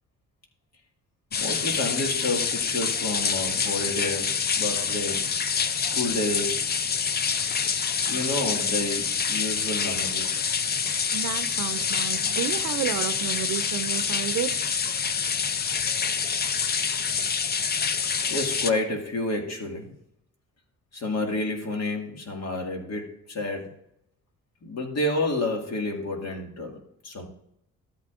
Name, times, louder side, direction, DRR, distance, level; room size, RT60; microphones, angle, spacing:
sound 1, 1.3-18.7, left 6 dB, 35° left, 0.5 m, -27 dB
voice 1, 1.4-6.6 8.1-10.4 18.3-19.9 20.9-23.7 24.6-26.8 27.0-27.3, left 2 dB, 55° left, 2.0 m, -30 dB
voice 2, 11.1-14.6, right 11 dB, 75° right, 0.6 m, -31 dB
13.0 x 8.3 x 2.5 m
cardioid pair, 90°, 30 cm